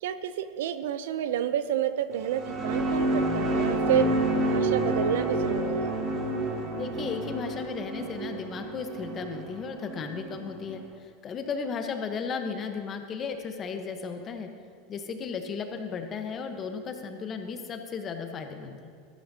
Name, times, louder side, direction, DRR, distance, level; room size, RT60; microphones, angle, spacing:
voice 1, 0.0-4.1 4.5-5.9, right 10 dB, 80° right, 12 dB, 0.5 m, -29 dB
sound 1, 2.1-10.8, right 1 dB, 40° right, 2.5 m, -29 dB
voice 2, 6.7-10.8 11.2-14.5 14.9-18.9, left 5 dB, 30° left, 6 dB, 1.0 m, -35 dB
13.0 x 11.5 x 2.8 m, 2.2 s
supercardioid pair, 125°, 0 cm